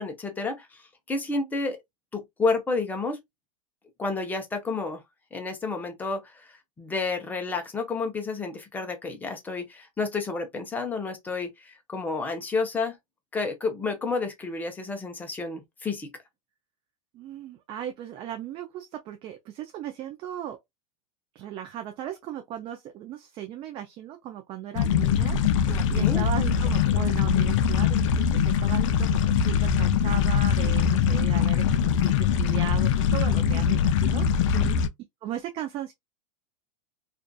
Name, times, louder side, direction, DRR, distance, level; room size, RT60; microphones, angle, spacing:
voice 1, 0.0-1.8 2.1-3.2 4.0-5.0 5.3-13.0 13.3-16.1 25.7-26.2 28.7-28.9 34.5-34.8, left 3 dB, 10° left, 0.6 m, -30 dB
voice 2, 17.1-20.6 21.3-34.7 35.2-35.9, right 11 dB, 30° right, 0.4 m, -37 dB
sound 1, 24.7-34.9, left 7 dB, 60° left, 0.5 m, -22 dB
2.5 x 2.5 x 2.2 m
hypercardioid pair, 130°, 18 cm